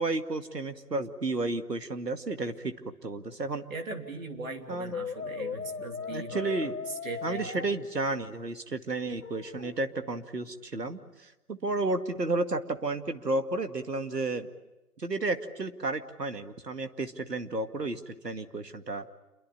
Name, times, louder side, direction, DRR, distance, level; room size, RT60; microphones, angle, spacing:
voice 1, 0.0-2.8 3.0-3.6 4.7-5.0 6.1-6.8 7.2-14.5 15.0-19.1, right 2 dB, 80° right, 8 dB, 2.2 m, -32 dB
voice 2, 3.7-6.7 7.0-7.7, right 3 dB, 55° right, 4 dB, 3.6 m, -39 dB
Brass instrument, 4.9-7.7 9.2-9.8, left 6 dB, 60° left, 1.7 m, -38 dB
28.5 x 23.0 x 8.7 m, 0.98 s
figure-of-eight pair, 135°, 48 cm